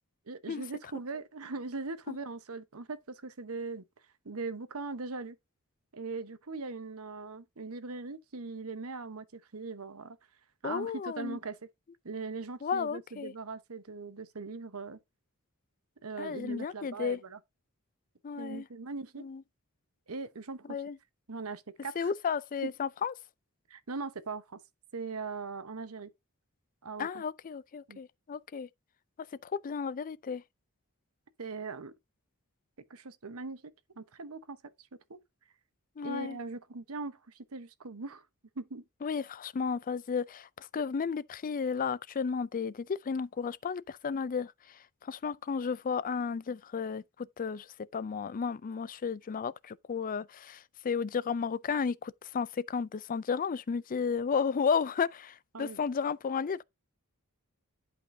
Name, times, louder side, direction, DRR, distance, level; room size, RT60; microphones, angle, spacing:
voice 1, 0.3-3.8 4.2-5.4 5.9-10.2 10.6-11.6 12.0-15.0 16.0-17.4 18.4-19.2 20.1-20.8 21.3-22.1 22.6-22.7 23.7-24.6 24.9-26.1 26.8-27.2 27.9-28.0 31.4-31.9 32.9-33.6 34.0-34.6 35.1-35.2 36.0-38.2 38.6-38.8 55.5-55.8, right 4 dB, 75° right, 1.0 m, -40 dB
voice 2, 10.6-11.4 12.6-13.3 16.2-17.2 18.2-18.6 19.2-19.4 20.7-21.0 22.0-23.1 27.0-28.7 29.4-30.4 36.0-36.4 39.0-44.5 45.0-47.7 47.9-56.6, left 6 dB, 40° left, 0.4 m, -33 dB
11.0 x 5.3 x 2.7 m
head